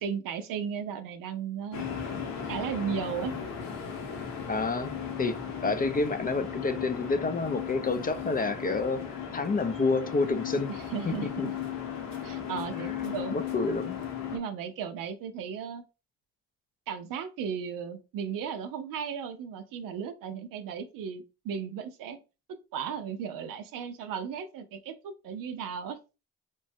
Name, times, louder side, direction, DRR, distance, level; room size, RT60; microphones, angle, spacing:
voice 1, 0.0-1.8 2.5-3.3 10.7-11.5 12.2-13.4 14.3-15.8 16.9-22.2 22.7-26.0, right 7 dB, 75° right, 0.5 m, -35 dB
sound 1, 1.7-14.4, left 8 dB, 80° left, 0.9 m, -36 dB
voice 2, 4.5-4.9 5.2-10.7 11.4-11.5 12.7-14.0, left 3 dB, 25° left, 0.4 m, -29 dB
3.1 x 2.2 x 2.6 m
supercardioid pair, 60°, 34 cm